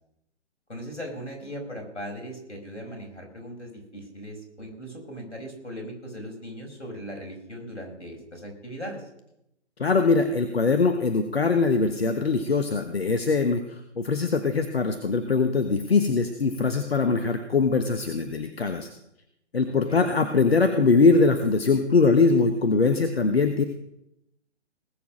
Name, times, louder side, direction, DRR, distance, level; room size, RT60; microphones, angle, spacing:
voice 1, 0.7-9.0 19.8-20.0, equal, 80° left, 1 dB, 5.7 m, -38 dB
voice 2, 9.8-18.9 19.5-23.6, left 4 dB, 60° left, 8 dB, 1.2 m, -22 dB
19.5 x 7.1 x 6.3 m, 0.82 s
figure-of-eight pair, 140°, 35 cm